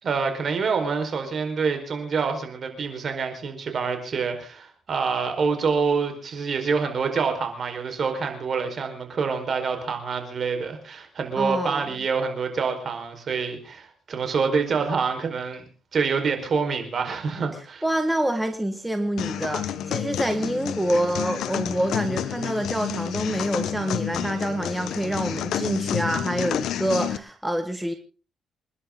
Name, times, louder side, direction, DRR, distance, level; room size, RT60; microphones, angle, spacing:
voice 1, 0.0-15.6 15.9-17.8, right 5 dB, 50° right, 6 dB, 4.9 m, -26 dB
voice 2, 11.4-11.8 17.8-27.9, right 1 dB, 5° right, 6 dB, 1.7 m, -26 dB
sound 1, 19.2-27.2, left 10 dB, 75° left, 1.0 m, -29 dB
28.0 x 11.0 x 3.9 m, 0.36 s
cardioid pair, 105°, 0 cm